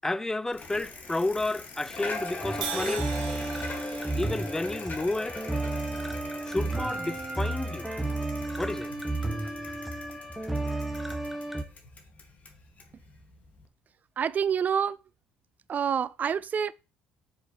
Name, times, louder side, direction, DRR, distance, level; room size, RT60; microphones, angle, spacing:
voice 1, 0.0-3.1 4.1-5.4 6.4-7.9 8.6-8.9, left 2 dB, 10° left, 0.5 m, -31 dB
Bicycle, 0.5-13.7, left 3 dB, 40° left, 2.3 m, -42 dB
sound 1, 2.4-11.6, right 2 dB, 5° right, 1.5 m, -32 dB
Crash cymbal, 2.6-6.6, right 7 dB, 85° right, 1.5 m, -40 dB
voice 2, 14.2-15.0 15.7-16.7, right 7 dB, 40° right, 0.5 m, -27 dB
6.7 x 4.9 x 4.8 m
hypercardioid pair, 60°, 4 cm